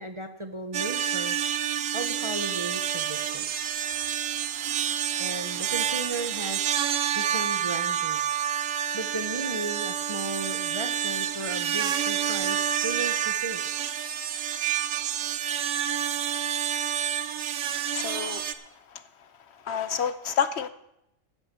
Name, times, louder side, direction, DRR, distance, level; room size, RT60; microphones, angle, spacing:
voice 1, 0.0-1.3 1.9-3.8 5.2-8.2 8.9-13.6, right 2 dB, 30° right, 5 dB, 0.6 m, -36 dB
sound 1, 0.7-18.5, right 9 dB, 90° right, 1.1 m, -28 dB
voice 2, 17.9-18.4 19.7-20.7, left 8 dB, 65° left, 12 dB, 0.8 m, -28 dB
10.0 x 8.8 x 6.8 m, 0.84 s
omnidirectional pair, 1.3 m